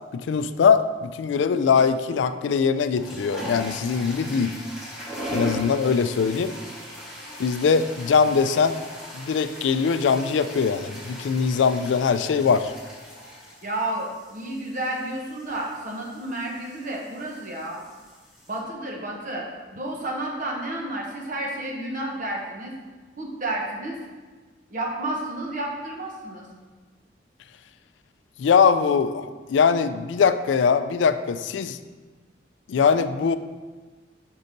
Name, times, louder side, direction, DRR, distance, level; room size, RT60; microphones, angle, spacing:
voice 1, 0.1-4.5 5.3-6.5 7.4-8.8 9.1-12.7 28.4-31.8 32.7-33.4, left 6 dB, 80° left, 11 dB, 0.3 m, -21 dB
sound 1, 1.8-2.1 2.8-18.6, equal, 5° right, 1.8 m, -39 dB
voice 2, 13.6-17.8 18.5-22.7 23.2-24.0 24.7-26.5, right 1 dB, 45° right, -1 dB, 1.1 m, -31 dB
5.4 x 4.0 x 5.1 m, 1.4 s
head